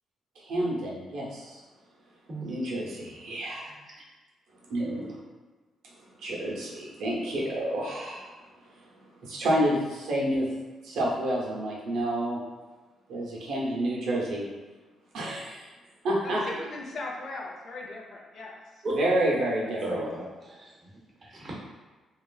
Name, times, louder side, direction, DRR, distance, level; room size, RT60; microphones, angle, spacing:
voice 1, 0.4-1.6 2.4-3.7 4.7-5.2 6.2-8.3 9.2-10.5 10.8-12.4 13.1-14.4 15.1-15.7 16.0-16.4 19.0-20.0, right 1 dB, 75° right, -4 dB, 0.7 m, -29 dB
voice 2, 16.2-18.8, left 2 dB, 50° left, -2 dB, 0.5 m, -39 dB
voice 3, 19.8-20.9 21.2-21.6, right 1 dB, 30° right, -3 dB, 0.7 m, -36 dB
2.9 x 2.4 x 2.3 m, 1.3 s
cardioid pair, 150°, 0 cm